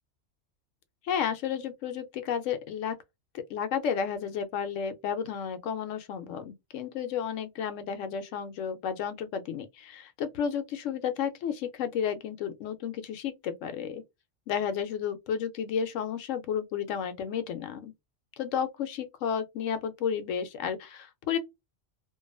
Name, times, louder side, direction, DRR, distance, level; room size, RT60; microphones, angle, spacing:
voice 1, 1.0-3.0 3.5-14.0 14.5-17.9 18.4-21.4, left 7 dB, 75° left, 0.9 m, -32 dB
2.5 x 2.3 x 2.4 m
omnidirectional pair, 1.3 m